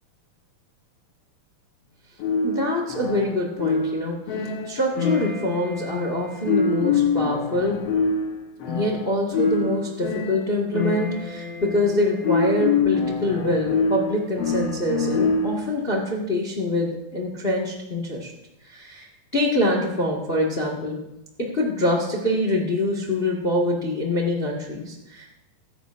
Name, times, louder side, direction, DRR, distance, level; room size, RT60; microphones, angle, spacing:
sound 1, 2.2-15.8, left 4 dB, 65° left, 1.6 m, -25 dB
voice 1, 2.4-4.2 4.6-7.8 8.7-18.3 18.6-21.0 21.4-25.4, left 1 dB, 85° left, 0 dB, 0.5 m, -25 dB
22.0 x 10.0 x 2.5 m, 0.92 s
omnidirectional pair, 4.1 m